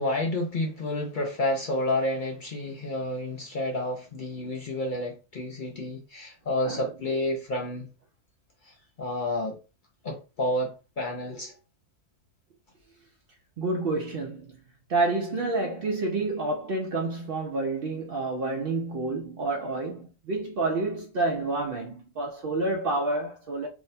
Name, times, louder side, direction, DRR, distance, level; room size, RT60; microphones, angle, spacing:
voice 1, 0.0-7.9 8.6-9.6 10.0-11.5, left 1 dB, 65° left, 0.4 m, -30 dB
voice 2, 13.6-14.5 14.9-23.7, right 2 dB, 75° right, 0.5 m, -29 dB
2.7 x 2.2 x 4.0 m
omnidirectional pair, 1.6 m